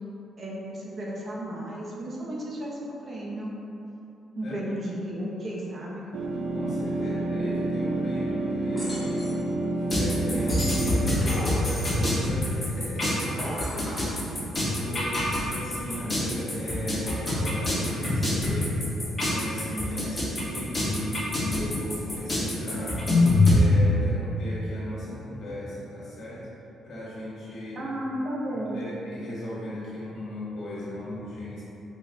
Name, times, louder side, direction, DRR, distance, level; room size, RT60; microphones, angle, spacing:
voice 1, 0.4-3.5 4.3-6.0 27.8-28.8, right 1 dB, 40° right, -4 dB, 0.7 m, -33 dB
sound 1, 6.1-11.1, right 2 dB, 80° right, 0.4 m, -28 dB
voice 2, 6.5-9.3 9.7-14.3 14.7-18.8 19.2-23.0 23.4-26.5 26.8-27.8 28.7-31.6, left 1 dB, 70° left, -9 dB, 1.4 m, -37 dB
sound 2, 8.7-9.5 10.8-11.6 13.2-14.2, equal, ahead, 1.5 m, -37 dB
sound 3, 9.9-23.6, left 2 dB, 30° left, 1.3 m, -25 dB
4.2 x 3.5 x 2.2 m, 2.9 s
cardioid pair, 90°, 0 cm